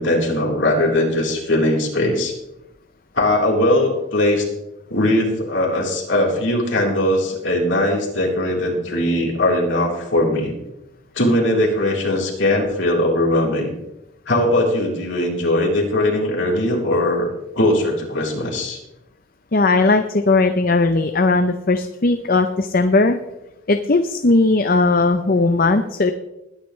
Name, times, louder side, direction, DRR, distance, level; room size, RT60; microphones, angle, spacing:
voice 1, 0.0-2.3 3.1-4.5 4.9-10.5 11.1-13.7 14.3-17.3 17.6-18.8, left 1 dB, 60° left, -2 dB, 3.9 m, -20 dB
voice 2, 19.5-23.2 23.7-26.1, left 3 dB, 45° left, 8 dB, 0.7 m, -17 dB
20.5 x 10.5 x 3.3 m, 0.91 s
head